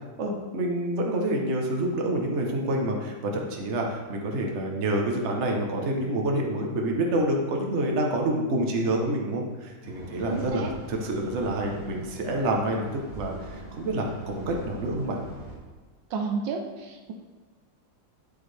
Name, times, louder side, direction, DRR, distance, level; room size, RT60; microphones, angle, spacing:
voice 1, 0.2-12.8 13.1-15.2, right 1 dB, 40° right, 1 dB, 1.3 m, -27 dB
sound 1, 9.8-15.6, right 1 dB, 20° right, 2.1 m, -42 dB
voice 2, 10.3-10.7 16.1-17.1, right 5 dB, 75° right, 3 dB, 1.5 m, -31 dB
9.4 x 7.8 x 3.4 m, 1.4 s
omnidirectional pair, 2.1 m